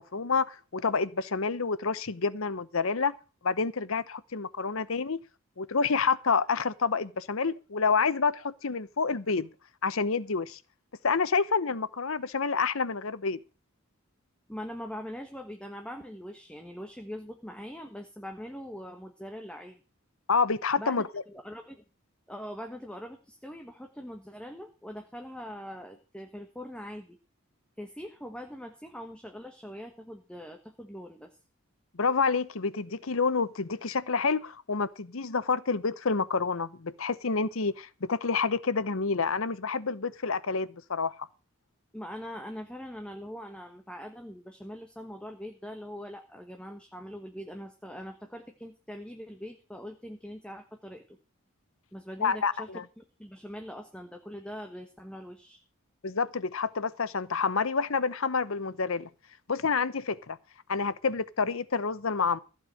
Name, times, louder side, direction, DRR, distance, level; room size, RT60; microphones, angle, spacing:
voice 1, 0.0-3.1 3.4-5.2 5.6-9.5 9.8-10.6 11.0-13.4 20.3-21.0 31.9-41.1 52.2-52.8 56.0-59.1 59.5-60.4 60.7-62.4, left 4 dB, 70° left, 0.9 m, -28 dB
voice 2, 14.5-19.8 20.8-21.8 22.3-27.2 27.8-31.4 41.9-51.2 51.9-55.6, equal, 5° left, 1.3 m, -42 dB
15.5 x 7.9 x 6.4 m
head